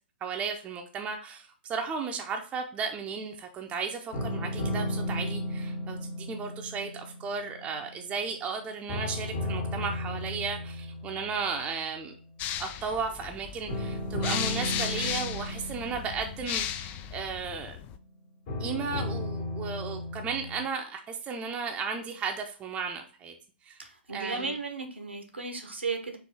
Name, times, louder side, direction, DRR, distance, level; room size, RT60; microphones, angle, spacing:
voice 1, 0.2-12.1 12.6-17.8 18.6-23.3 23.6-23.8 24.1-24.5, right 5 dB, 20° right, 4 dB, 0.7 m, -35 dB
sound 1, 4.1-8.5 8.9-12.2 13.7-17.7 18.5-20.6, left 1 dB, 45° left, 1.5 m, -35 dB
sound 2, 12.4-18.0, left 10 dB, 25° left, 0.3 m, -36 dB
voice 2, 23.8-26.2, right 4 dB, 85° right, 5 dB, 1.0 m, -35 dB
4.5 x 2.8 x 4.1 m, 0.38 s
figure-of-eight pair, 115°, 6 cm